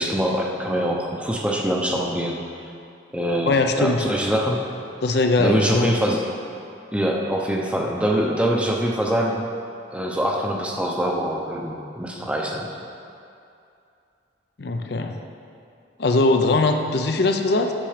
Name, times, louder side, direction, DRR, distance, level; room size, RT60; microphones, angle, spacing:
voice 1, 0.0-2.4 3.1-4.6 5.4-6.2 6.9-9.4 9.9-12.7, equal, 5° right, -1 dB, 0.7 m, -24 dB
voice 2, 3.5-4.0 5.0-6.0 14.6-15.2 16.0-17.7, left 2 dB, 60° left, 5 dB, 0.5 m, -20 dB
8.7 x 6.7 x 5.0 m, 2.6 s
head